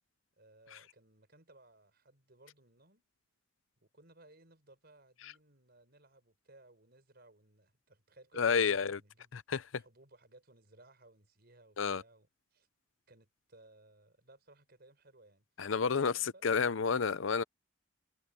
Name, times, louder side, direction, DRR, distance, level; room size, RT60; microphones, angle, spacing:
voice 1, 0.4-3.1 3.8-9.3 9.8-12.7 13.1-15.5 15.9-16.5, right 2 dB, 55° right, 5.3 m, -62 dB
voice 2, 8.4-9.0 9.3-9.6 11.8-12.0 15.6-16.1 16.4-17.4, left 5 dB, 85° left, 0.6 m, -30 dB
head